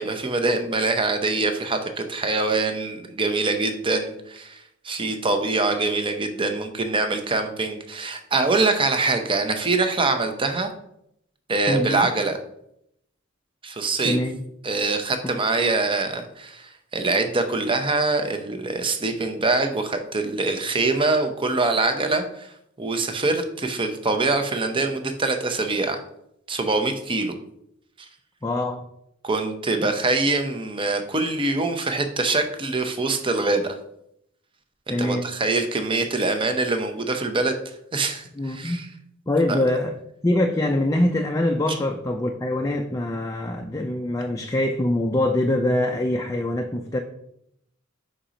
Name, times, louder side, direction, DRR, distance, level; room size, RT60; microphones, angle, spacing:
voice 1, 0.0-10.7 11.5-12.4 13.6-14.2 14.6-22.5 22.8-26.0 26.5-27.4 29.2-33.7 34.9-37.6 37.9-38.9 39.5-39.6, right 3 dB, 25° right, 6 dB, 0.7 m, -24 dB
voice 2, 11.7-12.1 14.0-14.4 28.4-28.8 29.8-29.9 34.9-35.2 38.3-38.8 39.3-39.9 40.2-47.0, left 1 dB, 15° left, 3 dB, 0.4 m, -24 dB
5.0 x 4.3 x 5.0 m, 0.74 s
head